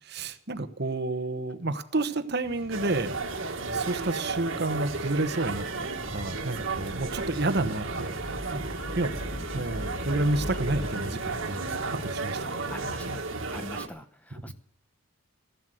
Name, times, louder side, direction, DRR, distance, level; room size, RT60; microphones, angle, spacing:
voice 1, 0.1-3.2 3.7-8.6 9.0-9.1 9.5-11.7 12.0-12.7, right 2 dB, 50° right, 11 dB, 1.1 m, -30 dB
sound 1, 2.4-13.2, left 2 dB, 50° left, 0.9 m, -44 dB
sound 2, 2.7-13.9, right 3 dB, 70° right, 1.9 m, -34 dB
sound 3, 5.4-11.5, right 1 dB, 20° right, 1.7 m, -41 dB
voice 2, 12.7-13.2 13.5-14.5, left 1 dB, 5° left, 9 dB, 0.9 m, -43 dB
15.0 x 11.5 x 7.7 m, 0.63 s
head